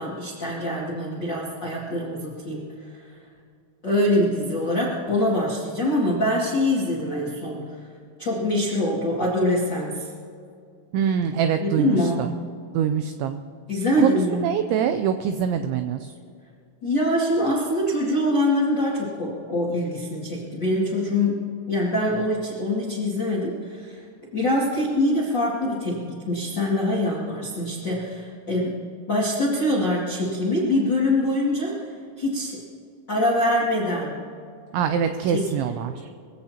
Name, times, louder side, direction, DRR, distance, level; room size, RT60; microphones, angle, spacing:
voice 1, 0.0-3.0 3.8-7.6 8.2-10.1 11.6-12.3 13.7-14.4 16.8-21.4 21.7-24.0 24.3-31.9 32.2-32.6 33.1-34.2 35.3-35.8, left 1 dB, 55° left, -5 dB, 1.2 m, -24 dB
voice 2, 10.9-12.3 12.7-13.4 14.0-16.1 34.7-36.1, right 8 dB, 90° right, 8 dB, 2.6 m, -24 dB
23.0 x 16.0 x 2.9 m, 2.4 s
omnidirectional pair, 5.9 m